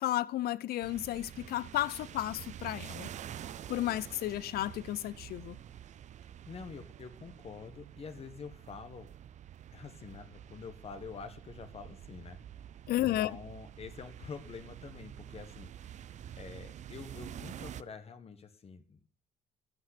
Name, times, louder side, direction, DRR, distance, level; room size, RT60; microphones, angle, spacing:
voice 1, 0.0-3.1 3.7-5.6 12.9-13.3, left 14 dB, 65° left, 0.6 m, -33 dB
sound 1, 0.8-17.8, right 10 dB, 45° right, 0.5 m, -48 dB
voice 2, 6.5-9.1 9.7-12.4 12.9-15.7 16.4-19.0, left 5 dB, 35° left, 1.3 m, -47 dB
14.5 x 5.7 x 5.9 m
cardioid pair, 110°, 17 cm